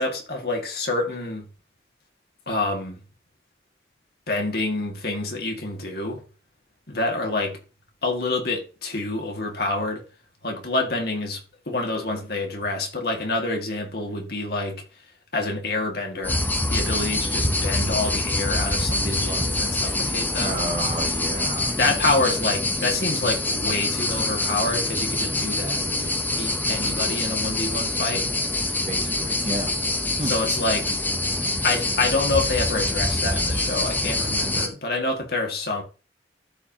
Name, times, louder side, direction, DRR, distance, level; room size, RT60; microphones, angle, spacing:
voice 1, 0.0-1.4 2.5-3.0 4.3-6.2 6.9-7.6 8.0-10.0 10.4-14.8 15.3-16.4 16.7-20.6 21.8-28.3 30.2-31.0 31.6-35.8, left 2 dB, 60° left, 2.2 m, -27 dB
sound 1, 16.2-34.7, left 2 dB, 10° left, 0.9 m, -25 dB
voice 2, 20.4-21.8 28.9-29.7 30.2-30.3, right 2 dB, 35° right, 1.1 m, -31 dB
14.0 x 4.8 x 3.0 m
head